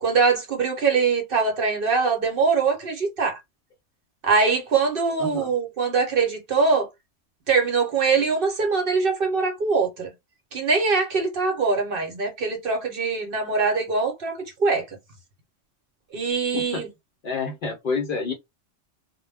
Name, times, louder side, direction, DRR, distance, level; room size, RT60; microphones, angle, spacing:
voice 1, 0.0-3.4 4.2-6.9 7.5-10.1 10.5-14.8 16.1-16.9, right 4 dB, 55° right, 0.9 m, -23 dB
voice 2, 5.2-5.5 16.5-16.9 17.2-18.3, left 4 dB, 55° left, 0.7 m, -28 dB
2.2 x 2.1 x 3.3 m
omnidirectional pair, 1.3 m